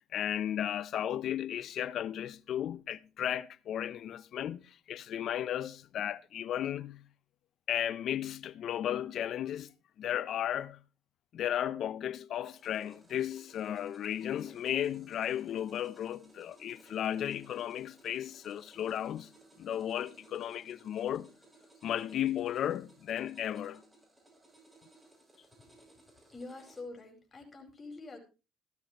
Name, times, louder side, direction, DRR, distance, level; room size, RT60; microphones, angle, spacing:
voice 1, 0.1-7.1 7.7-9.7 10.0-10.8 11.3-19.3 19.6-21.3 21.8-23.8, left 10 dB, 65° left, 0.6 m, -34 dB
sound 1, 12.5-26.8, right 2 dB, 20° right, 6.9 m, -61 dB
voice 2, 26.3-28.2, left 3 dB, 30° left, 5.0 m, -46 dB
14.5 x 11.5 x 3.0 m
supercardioid pair, 80°, 0 cm